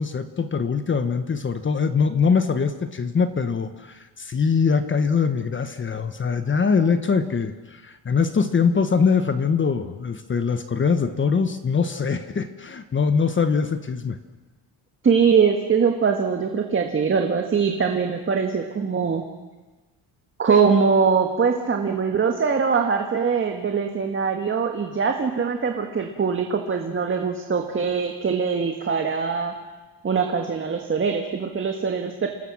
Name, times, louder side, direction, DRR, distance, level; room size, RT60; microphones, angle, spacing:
voice 1, 0.0-14.2, left 5 dB, 25° left, 10 dB, 1.2 m, -22 dB
voice 2, 15.0-19.2 20.4-29.5 30.0-32.3, right 5 dB, 30° right, 4 dB, 1.8 m, -22 dB
28.5 x 20.0 x 6.3 m, 1.2 s
cardioid pair, 130°, 43 cm